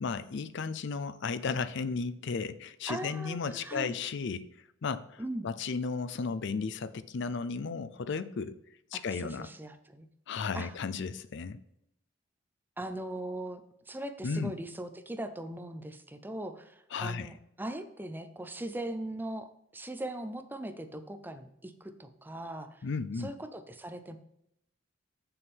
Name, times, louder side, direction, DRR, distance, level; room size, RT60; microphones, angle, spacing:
voice 1, 0.0-4.5 4.8-8.6 8.9-9.5 10.3-11.6 14.2-14.5 16.9-17.3 22.8-23.3, left 5 dB, 65° left, 13 dB, 0.5 m, -34 dB
voice 2, 2.9-3.9 5.2-5.5 8.9-10.1 10.5-10.7 12.8-13.6 13.9-22.8 23.2-24.2, right 1 dB, 10° right, 9 dB, 0.6 m, -40 dB
7.2 x 6.8 x 3.6 m, 0.78 s
head